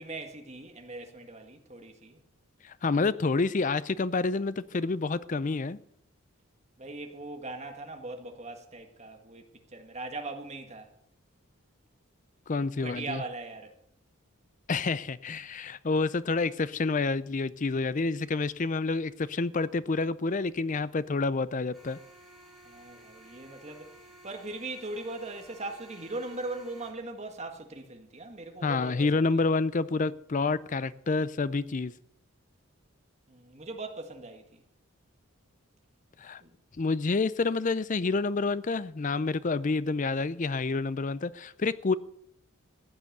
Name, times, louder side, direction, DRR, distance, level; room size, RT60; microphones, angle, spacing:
voice 1, 0.0-2.2 6.8-9.4 9.7-10.9 12.8-13.7 22.6-23.9 24.2-29.3 33.3-34.6 36.4-36.5, right 2 dB, 30° right, 1.6 m, -40 dB
voice 2, 2.6-5.8 12.5-13.2 14.7-22.0 28.6-31.9 36.2-36.4 36.8-41.9, left 3 dB, 35° left, 0.5 m, -28 dB
sound 1, 21.7-26.9, right 1 dB, ahead, 2.9 m, -54 dB
15.0 x 9.0 x 6.6 m
head